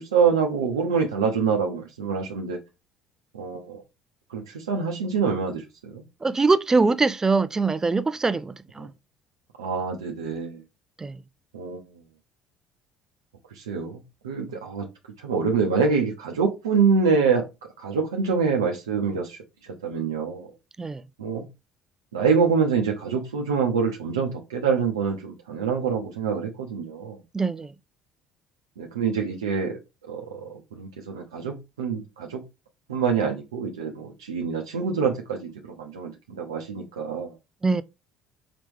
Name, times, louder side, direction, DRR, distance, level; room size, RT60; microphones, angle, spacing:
voice 1, 0.0-2.6 3.3-3.8 4.3-6.0 8.8-8.9 9.6-10.6 11.5-11.8 13.5-14.9 15.2-17.5 17.8-20.5 21.2-21.5 22.1-27.2 28.8-32.4 32.9-37.4, right 5 dB, 85° right, 0.7 m, -26 dB
voice 2, 6.2-8.9 11.0-11.2 20.8-21.0 27.3-27.7 37.6-37.8, right 3 dB, 20° right, 0.4 m, -23 dB
4.9 x 3.1 x 3.4 m
hypercardioid pair, 60°, 2 cm